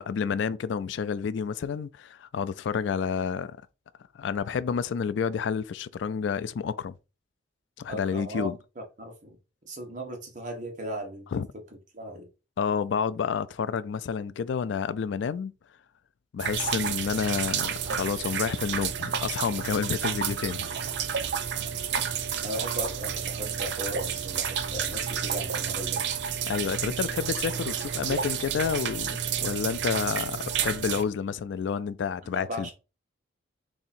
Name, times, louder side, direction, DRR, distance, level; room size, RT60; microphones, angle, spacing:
voice 1, 0.0-3.6 4.1-6.9 7.8-8.5 11.3-11.5 12.6-15.5 16.3-20.7 26.5-32.7, left 6 dB, 70° left, 0.3 m, -29 dB
voice 2, 7.9-8.5 9.0-9.4 9.6-11.3 11.9-12.3 21.5-26.1 32.2-32.7, equal, 40° right, 1.1 m, -37 dB
sound 1, 16.4-31.0, right 8 dB, 60° right, 0.4 m, -30 dB
3.6 x 2.8 x 4.1 m
head